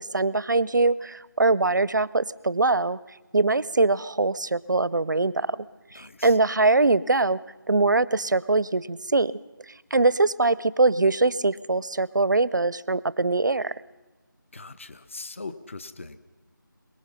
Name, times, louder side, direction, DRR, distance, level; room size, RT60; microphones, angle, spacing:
voice 1, 0.0-3.0 3.3-5.6 5.9-7.4 7.7-9.3 9.9-13.7, right 3 dB, 60° right, 20 dB, 0.7 m, -22 dB
voice 2, 5.9-6.4 14.5-16.2, left 3 dB, 35° left, 14 dB, 0.9 m, -40 dB
23.5 x 21.0 x 5.6 m, 1.2 s
figure-of-eight pair, 170°, 11 cm